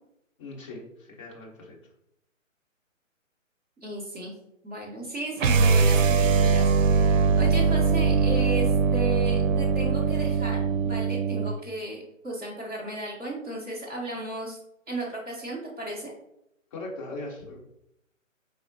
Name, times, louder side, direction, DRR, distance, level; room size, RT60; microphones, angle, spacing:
voice 1, 0.4-1.8 16.7-17.6, left 2 dB, 25° left, -2 dB, 1.0 m, -39 dB
voice 2, 3.8-4.3 4.6-14.6 14.9-16.1, right 2 dB, 10° right, -8 dB, 0.7 m, -35 dB
sound 1, 5.4-11.6, right 5 dB, 75° right, 0.6 m, -22 dB
4.7 x 3.4 x 2.8 m, 0.80 s
hypercardioid pair, 155°, 40 cm